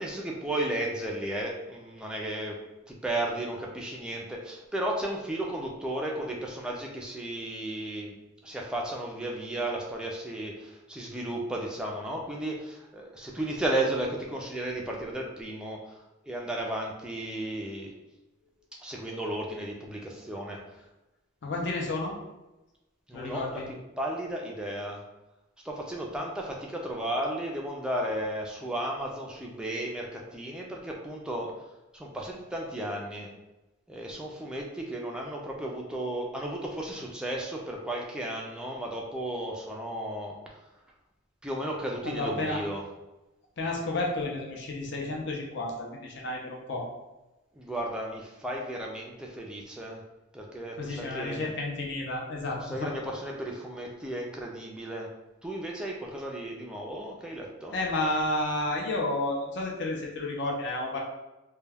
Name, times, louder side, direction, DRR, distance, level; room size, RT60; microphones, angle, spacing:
voice 1, 0.0-2.6 2.9-8.1 8.4-16.0 16.3-17.9 18.8-20.6 23.1-23.6 24.0-25.0 25.6-31.5 31.9-33.3 33.9-40.4 41.4-42.8 47.5-50.0 50.3-51.5 52.5-55.1 55.4-57.8, right 1 dB, 5° right, -2 dB, 0.3 m, -34 dB
voice 2, 21.4-22.1 23.1-23.7 42.0-42.6 43.6-46.9 50.8-52.9 57.7-61.0, left 2 dB, 60° left, -1 dB, 0.5 m, -31 dB
2.2 x 2.2 x 3.3 m, 1.0 s
head